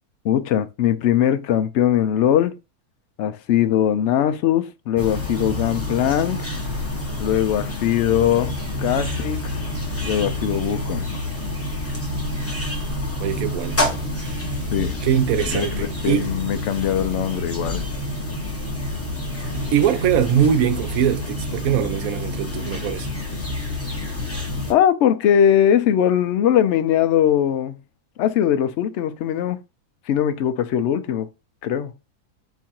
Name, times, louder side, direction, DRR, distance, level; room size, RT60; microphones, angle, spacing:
voice 1, 0.2-2.5 3.2-6.5 7.2-8.5 8.8-9.7 10.0-11.1 14.7-15.0 15.5-17.8 24.7-27.8 28.2-29.6 30.1-31.3 31.6-31.9, left 10 dB, 65° left, 0.7 m, -20 dB
sound 1, 5.0-24.7, left 1 dB, 10° left, 0.9 m, -28 dB
voice 2, 13.2-13.8 14.2-14.5 15.0-16.3 19.7-23.1, right 9 dB, 70° right, 1.0 m, -22 dB
4.6 x 2.4 x 4.3 m
omnidirectional pair, 1.6 m